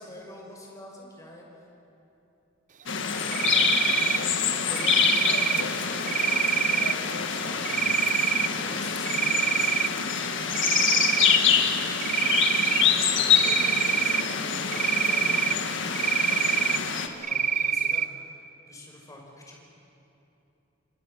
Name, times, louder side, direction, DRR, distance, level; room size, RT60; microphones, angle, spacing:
voice 1, 0.0-1.5 3.1-3.5 4.5-5.9 6.5-9.8 11.5-11.9 12.9-16.1 17.2-19.6, left 1 dB, 15° left, -1 dB, 5.5 m, -46 dB
sound 1, 2.9-17.1, left 7 dB, 65° left, 1.8 m, -26 dB
Cricket, 3.3-4.2 4.8-5.6 6.1-6.9 7.6-8.5 8.9-9.9 10.2-11.4 12.0-12.8 13.3-14.2 14.7-15.5 15.9-16.8 17.2-18.0, right 7 dB, 40° right, 0.7 m, -25 dB
30.0 x 25.5 x 6.5 m, 2.9 s
head